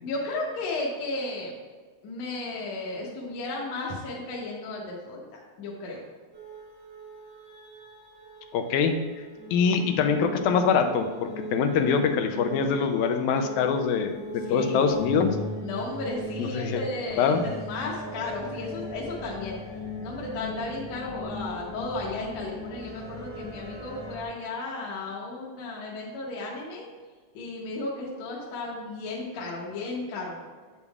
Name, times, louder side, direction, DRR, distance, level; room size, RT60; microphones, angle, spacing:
voice 1, 0.0-1.6 2.0-6.0 13.0-13.2 14.5-14.9 15.6-19.6 20.0-26.9 27.3-30.4, left 2 dB, 65° left, -3 dB, 2.0 m, -34 dB
sound 1, 6.3-24.2, left 1 dB, 45° right, 0.5 m, -39 dB
voice 2, 8.5-9.0 9.5-15.4 16.4-16.8 17.2-17.4, left 6 dB, 85° left, 6 dB, 2.0 m, -24 dB
8.0 x 7.1 x 2.4 m, 1.4 s
omnidirectional pair, 3.5 m